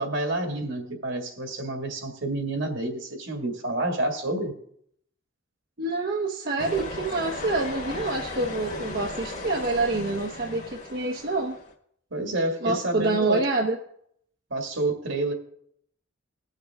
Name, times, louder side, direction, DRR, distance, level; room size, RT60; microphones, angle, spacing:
voice 1, 0.0-4.5 12.1-13.4 14.5-15.3, right 2 dB, 70° right, 3 dB, 2.0 m, -29 dB
voice 2, 5.8-11.5 12.6-13.8, right 2 dB, 50° right, 0 dB, 0.8 m, -27 dB
sound 1, 6.6-11.7, left 2 dB, 40° left, 1.5 m, -36 dB
19.5 x 6.7 x 3.6 m, 0.69 s
head